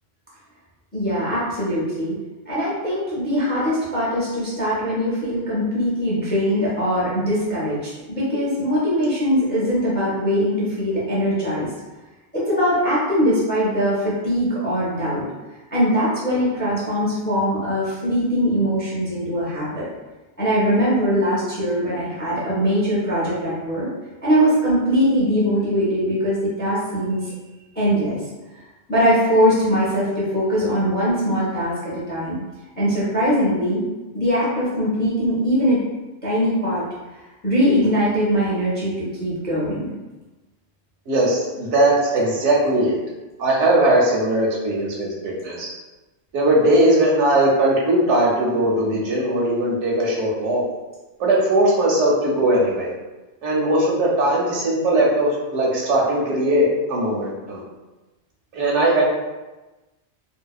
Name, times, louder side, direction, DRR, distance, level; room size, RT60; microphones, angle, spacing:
voice 1, 0.9-2.2 2.5-11.7 12.3-15.2 15.7-19.9 20.4-23.9 24.2-27.3 27.7-28.2 28.9-32.4 32.8-33.8 34.1-35.9 36.2-36.8 37.4-39.9, equal, 15° left, -8 dB, 0.4 m, -21 dB
voice 2, 41.1-43.0 43.4-45.7 46.3-50.6 51.2-52.9 53.4-57.6 58.5-59.0, right 1 dB, 80° right, -3 dB, 1.0 m, -19 dB
2.6 x 2.0 x 2.3 m, 1.1 s
omnidirectional pair, 1.2 m